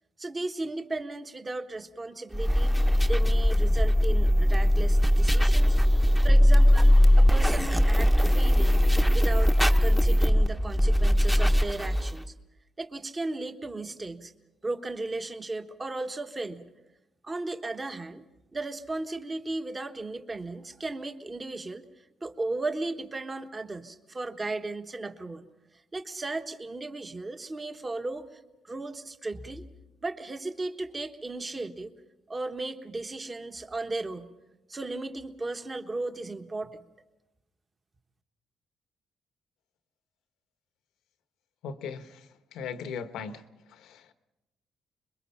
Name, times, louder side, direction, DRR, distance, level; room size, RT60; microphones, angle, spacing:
voice 1, 0.2-2.7 3.1-5.8 6.2-8.7 9.1-12.3 12.8-14.3 14.6-16.7 17.2-18.3 18.5-25.5 25.9-29.7 30.0-31.9 32.3-34.3 34.7-36.8, right 2 dB, 25° right, 7 dB, 1.3 m, -36 dB
sound 1, 2.3-12.2, equal, 5° right, 1.0 m, -20 dB
voice 2, 41.6-44.1, left 6 dB, 85° left, 10 dB, 1.2 m, -39 dB
26.0 x 22.0 x 5.7 m, 1.0 s
cardioid pair, 90°, 0 cm